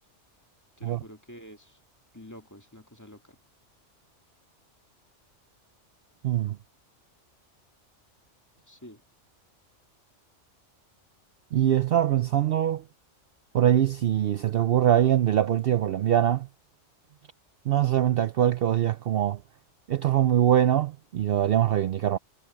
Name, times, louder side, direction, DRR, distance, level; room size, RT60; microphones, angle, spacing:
voice 1, 0.8-1.8 2.1-3.4 8.7-9.0, left 1 dB, 15° left, 1.8 m, -48 dB
voice 2, 6.2-6.6 11.5-12.8 13.5-16.5 17.7-19.4 19.9-22.2, right 11 dB, 60° right, 0.7 m, -23 dB
omnidirectional pair, 1.3 m